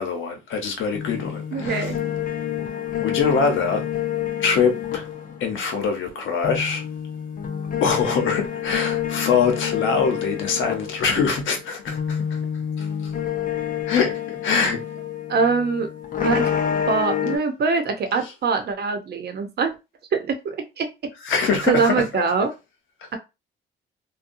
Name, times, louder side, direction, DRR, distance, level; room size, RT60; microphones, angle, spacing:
voice 1, 0.0-1.9 3.0-3.9 4.4-5.1 5.4-6.8 7.8-12.4 12.8-12.9 13.9-14.8 21.2-22.0, left 5 dB, 75° left, 1.0 m, -23 dB
sound 1, 0.9-6.1 6.4-17.4, left 9 dB, 45° left, 0.6 m, -28 dB
voice 2, 1.5-2.0 15.3-15.9 16.2-16.5 16.9-19.7 20.1-20.9 21.6-22.5 23.1-23.2, right 5 dB, 55° right, 0.8 m, -23 dB
2.7 x 2.2 x 2.6 m
cardioid pair, 90°, 20 cm